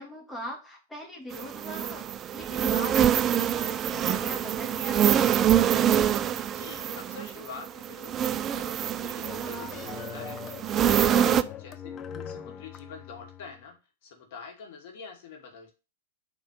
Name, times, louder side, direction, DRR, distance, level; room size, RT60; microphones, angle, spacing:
voice 1, 0.0-5.2 10.9-11.3, left 1 dB, 10° left, -1 dB, 2.7 m, -40 dB
sound 1, 1.3-11.4, right 10 dB, 30° right, 0.4 m, -25 dB
voice 2, 6.5-10.6 11.0-13.7 14.0-15.7, left 5 dB, 55° left, 3 dB, 2.2 m, -46 dB
sound 2, 9.2-13.6, left 8 dB, 30° left, 0.7 m, -41 dB
4.9 x 4.5 x 5.5 m, 0.29 s
figure-of-eight pair, 100°, 0 cm